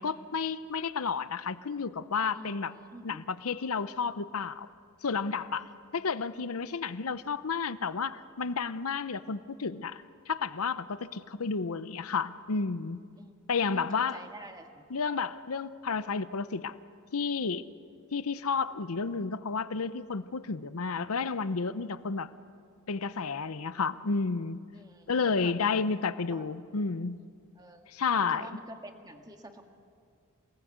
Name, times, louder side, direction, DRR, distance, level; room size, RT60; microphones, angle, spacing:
voice 1, 0.0-2.7 3.0-4.7 5.0-5.7 5.9-13.0 13.5-14.2 14.9-16.8 17.1-17.7 18.1-22.3 22.9-24.6 25.1-27.2 27.9-28.5, left 5 dB, 75° left, 14 dB, 0.7 m, -31 dB
voice 2, 2.3-3.2 5.6-5.8 13.2-13.3 13.7-14.8 24.7-25.9 26.3-26.5 27.6-27.9 28.2-29.6, right 1 dB, 20° right, 4 dB, 1.8 m, -48 dB
27.5 x 19.0 x 8.1 m, 2.2 s
head